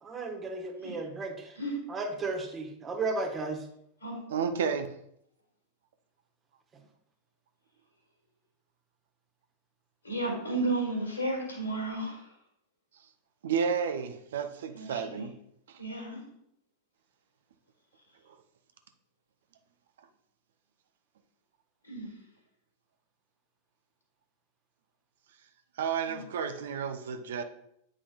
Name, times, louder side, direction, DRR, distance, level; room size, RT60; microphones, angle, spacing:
voice 1, 0.0-1.6 1.9-3.7, right 3 dB, 20° right, 3 dB, 1.0 m, -34 dB
voice 2, 4.3-4.9 13.4-15.3 25.8-27.4, right 6 dB, 60° right, 8 dB, 0.6 m, -31 dB
voice 3, 10.0-12.2 14.7-15.2 15.8-16.3 21.9-22.2 26.0-26.2, right 2 dB, 75° left, -1 dB, 2.4 m, -33 dB
8.5 x 4.9 x 2.4 m, 0.72 s
figure-of-eight pair, 90°, 0 cm